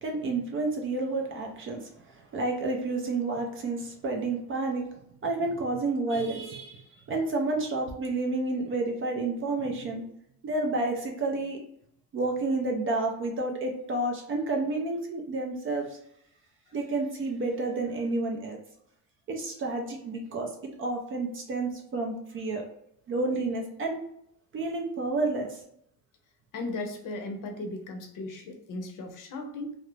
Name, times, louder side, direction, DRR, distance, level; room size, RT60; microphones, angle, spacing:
voice 1, 0.0-1.9 2.3-4.8 5.2-10.0 10.4-11.6 12.1-16.0 16.7-18.6 19.3-20.5 20.8-22.6 23.1-24.0 24.5-25.6, right 2 dB, 35° right, 1 dB, 0.4 m, -30 dB
voice 2, 26.5-29.7, left 2 dB, 55° left, 4 dB, 0.6 m, -36 dB
2.4 x 2.0 x 3.0 m, 0.72 s
cardioid pair, 145°, 39 cm